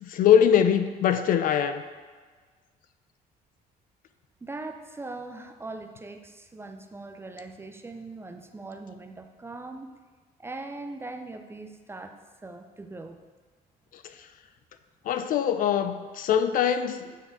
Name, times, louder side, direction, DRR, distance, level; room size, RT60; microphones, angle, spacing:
voice 1, 0.0-1.8 15.1-17.1, left 9 dB, 55° left, 10 dB, 0.4 m, -22 dB
voice 2, 4.4-9.9 10.4-12.1 12.4-13.2 17.1-17.2, right 2 dB, 15° right, 6 dB, 0.4 m, -40 dB
8.2 x 3.8 x 3.5 m, 1.5 s
cardioid pair, 110°, 17 cm